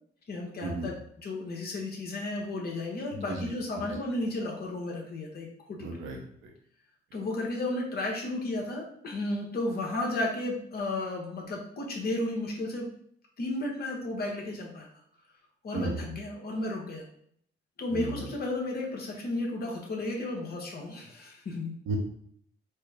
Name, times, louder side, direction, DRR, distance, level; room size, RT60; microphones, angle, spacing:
voice 1, 0.3-5.9 7.1-12.9 13.4-14.9 15.6-17.0 17.8-21.7, left 2 dB, 50° left, -1 dB, 1.1 m, -33 dB
voice 2, 5.8-6.5 15.7-16.0 17.9-18.2 21.9-22.0, right 2 dB, 85° right, 1 dB, 0.9 m, -34 dB
4.3 x 2.1 x 3.4 m, 0.65 s
cardioid pair, 90°, 20 cm